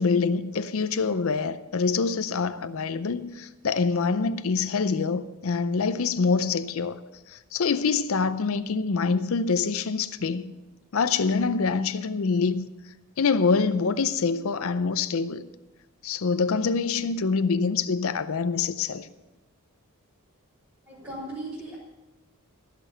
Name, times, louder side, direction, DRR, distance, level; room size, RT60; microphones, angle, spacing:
voice 1, 0.0-7.0 7.3-10.5 10.9-12.7 13.2-15.5 16.0-19.1, left 4 dB, 65° left, 0.5 m, -25 dB
voice 2, 20.9-21.8, right 1 dB, 15° right, 4.1 m, -37 dB
15.5 x 6.7 x 6.4 m
head